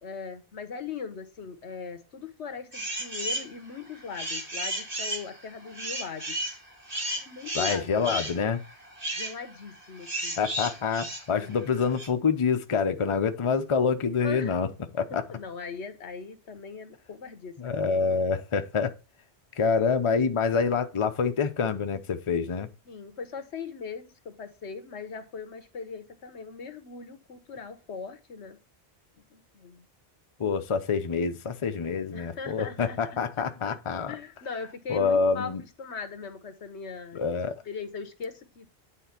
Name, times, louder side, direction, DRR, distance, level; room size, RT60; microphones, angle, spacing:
voice 1, 0.0-6.5 7.2-8.2 9.1-10.4 11.3-11.6 14.2-14.6 15.3-18.1 22.9-28.6 29.3-29.9 32.1-33.2 34.1-35.5 35.8-37.2 37.6-38.7, left 5 dB, 90° left, 1.4 m, -40 dB
sound 1, 2.7-3.5 3.9-12.1, right 1 dB, 35° right, 2.0 m, -34 dB
voice 2, 7.5-8.6 10.4-14.7 14.9-15.2 17.6-18.9 19.6-22.7 30.4-34.2 34.9-35.6 37.1-37.6, left 5 dB, 35° left, 0.7 m, -26 dB
9.2 x 3.8 x 5.8 m
omnidirectional pair, 1.1 m